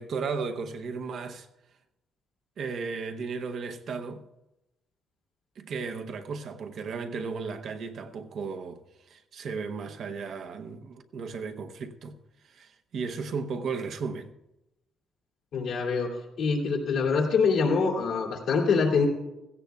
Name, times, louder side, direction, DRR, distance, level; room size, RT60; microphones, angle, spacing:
voice 1, 0.0-1.5 2.6-4.2 5.6-12.2 12.4-14.3, right 5 dB, 65° right, 0.9 m, -35 dB
voice 2, 15.5-19.1, left 5 dB, 75° left, 2.6 m, -25 dB
16.5 x 14.5 x 2.3 m
cardioid pair, 90°, 0 cm